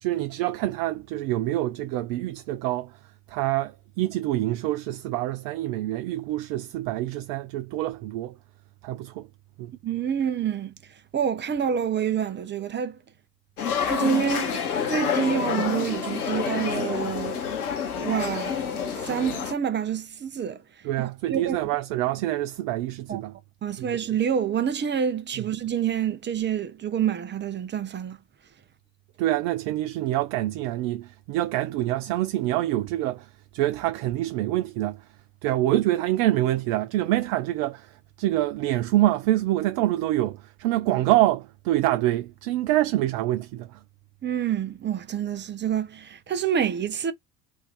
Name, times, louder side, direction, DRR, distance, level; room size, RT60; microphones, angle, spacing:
voice 1, 0.0-3.0 3.3-8.3 8.8-9.3 9.6-9.7 20.8-23.3 23.8-23.9 29.2-35.1 35.4-43.8, right 15 dB, 50° right, 0.6 m, -26 dB
voice 2, 9.8-10.7 11.1-13.0 13.8-14.5 14.9-17.4 17.9-20.6 21.3-21.6 23.1-23.2 23.6-28.2 44.2-47.1, right 8 dB, 25° right, 0.8 m, -27 dB
sound 1, 13.6-19.5, left 7 dB, 75° left, 1.2 m, -28 dB
3.4 x 2.7 x 3.9 m
figure-of-eight pair, 65°, 45 cm